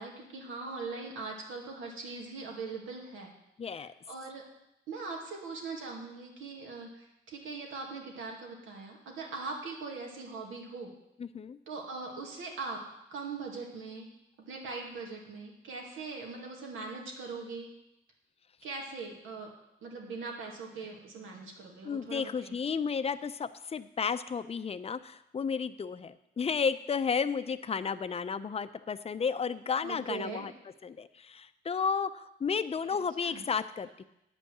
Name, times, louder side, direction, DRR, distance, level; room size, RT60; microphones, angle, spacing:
voice 1, 0.0-3.3 4.1-4.4 4.9-10.9 11.7-12.8 13.1-14.0 14.4-17.7 18.6-19.5 19.8-22.6 29.8-30.5 32.9-33.0 33.2-33.4, right 4 dB, 85° right, 0 dB, 2.3 m, -41 dB
voice 2, 3.6-3.9 11.2-11.6 21.8-30.5 30.8-34.0, left 6 dB, 30° left, 12 dB, 0.5 m, -33 dB
9.8 x 5.4 x 8.0 m, 0.86 s
cardioid pair, 90°, 20 cm